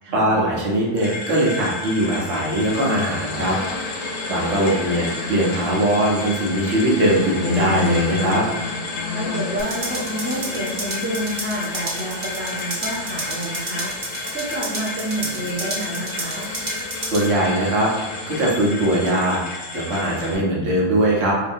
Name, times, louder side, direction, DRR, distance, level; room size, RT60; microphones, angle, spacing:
voice 1, 0.1-3.6 4.3-8.4 17.0-17.9 18.3-19.4 19.7-21.3, right 1 dB, 85° right, -4 dB, 1.3 m, -20 dB
sound 1, 1.0-20.3, left 3 dB, 45° left, 0.3 m, -33 dB
sound 2, 2.7-18.5, left 4 dB, 80° left, 0.9 m, -32 dB
voice 2, 9.1-16.5, right 1 dB, 15° right, -4 dB, 0.5 m, -29 dB
sound 3, 9.6-17.3, right 2 dB, 50° right, 0.9 m, -32 dB
3.9 x 2.7 x 2.6 m, 1.2 s
omnidirectional pair, 1.2 m